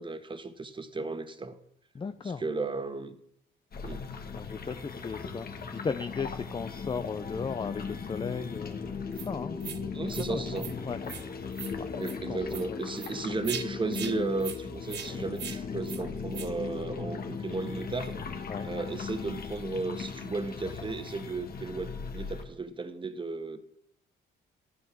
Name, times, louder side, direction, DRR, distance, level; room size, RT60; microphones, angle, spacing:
voice 1, 0.0-1.6 2.2-3.2 3.8-4.1 9.9-10.7 12.0-18.2 18.6-23.6, right 3 dB, 25° right, 1.4 m, -35 dB
voice 2, 1.9-2.4 4.3-9.6 10.3-10.4 10.8-11.0 11.8-12.4 12.7-12.9 18.5-18.7, left 5 dB, 25° left, 0.6 m, -36 dB
sound 1, 3.7-22.4, left 5 dB, 50° left, 2.0 m, -38 dB
sound 2, 9.1-9.3 9.6-9.8 10.1-10.3 10.6-10.7 11.0-11.2 11.5-11.7 12.0-12.2 12.5-12.6 13.0-13.1 13.4-13.6 13.9-14.1 14.4-14.6 14.9-15.1 15.4-15.6 15.9-16.0 16.3-16.5, right 9 dB, 60° right, 1.1 m, -39 dB
13.0 x 9.7 x 6.0 m
cardioid pair, 90°, 20 cm